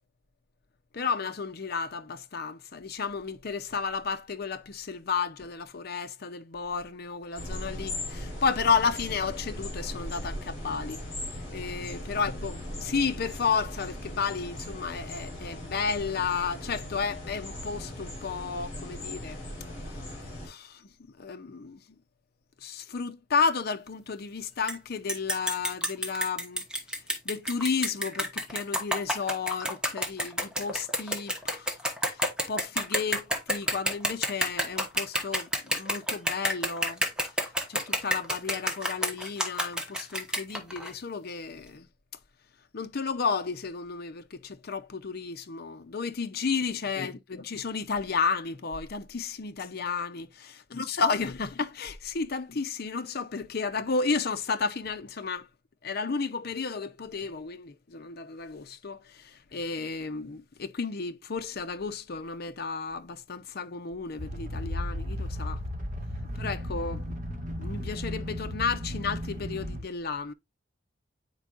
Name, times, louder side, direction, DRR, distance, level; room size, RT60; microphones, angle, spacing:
voice 1, 0.9-11.0 11.5-19.4 20.4-20.9 21.2-22.0 22.6-26.6 27.2-31.7 32.1-37.1 37.7-41.9 42.7-55.5 55.8-65.6 66.4-67.1 67.4-70.3, left 5 dB, 55° left, 0.6 m, -32 dB
sound 1, 7.4-20.5, left 1 dB, 35° left, 4.4 m, -38 dB
sound 2, 24.7-24.8 25.1-40.9, equal, 5° right, 1.2 m, -29 dB
sound 3, 64.2-69.8, equal, 45° right, 1.9 m, -35 dB
9.8 x 4.5 x 2.5 m
head